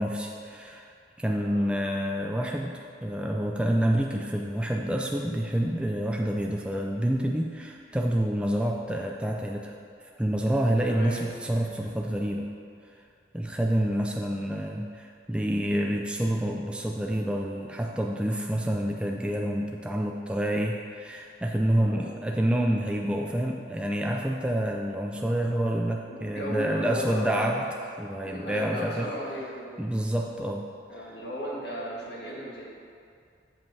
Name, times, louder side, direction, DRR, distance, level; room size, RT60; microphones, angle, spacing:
voice 1, 0.0-9.7 10.0-12.5 13.3-27.7 28.0-29.1 29.8-30.6 31.0-31.1, right 1 dB, 5° right, 0 dB, 0.3 m, -28 dB
voice 2, 10.9-11.2 21.8-22.0 26.1-27.5 28.2-29.7 30.9-32.6, equal, 60° left, -5 dB, 1.6 m, -35 dB
7.3 x 5.1 x 4.8 m, 2.3 s
head